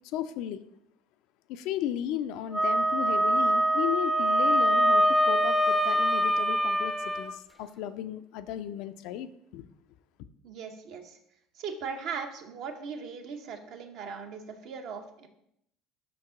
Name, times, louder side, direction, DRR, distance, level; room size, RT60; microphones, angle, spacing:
voice 1, 0.1-0.6 1.5-9.7, left 10 dB, 65° left, 11 dB, 0.3 m, -35 dB
Wind instrument woodwind instrument, 2.5-7.3, equal, 5° right, 0.5 m, -24 dB
voice 2, 10.4-11.2 11.5-15.3, right 6 dB, 60° right, 6 dB, 0.8 m, -39 dB
5.6 x 4.6 x 3.7 m, 0.75 s
hypercardioid pair, 65°, 0 cm